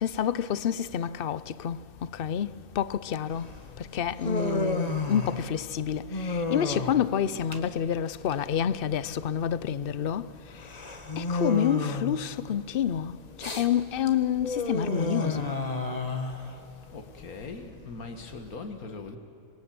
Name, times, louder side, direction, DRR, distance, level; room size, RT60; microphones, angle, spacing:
voice 1, 0.0-1.8 2.1-3.5 3.9-10.3 11.2-15.5, left 9 dB, 50° left, 0.8 m, -28 dB
Human voice, 3.3-18.5, left 3 dB, 30° left, 1.9 m, -33 dB
voice 2, 16.9-19.2, left 3 dB, 85° left, 2.1 m, -40 dB
26.5 x 23.0 x 7.8 m
omnidirectional pair, 1.5 m